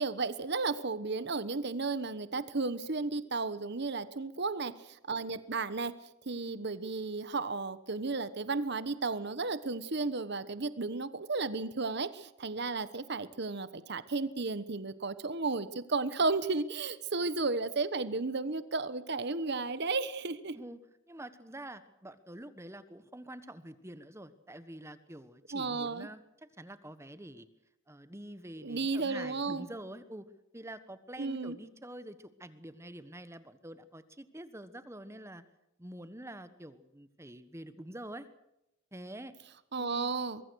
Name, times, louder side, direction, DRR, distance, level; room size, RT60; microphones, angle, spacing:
voice 1, 0.0-5.9 6.3-20.6 25.5-26.1 28.6-29.7 31.2-31.6 39.7-40.4, right 3 dB, 55° right, 14 dB, 1.2 m, -33 dB
voice 2, 21.1-27.5 27.9-30.3 30.5-35.4 35.8-38.3 38.9-39.3 39.8-40.1, right 1 dB, 15° right, 13 dB, 1.2 m, -46 dB
24.0 x 22.5 x 6.4 m, 0.86 s
head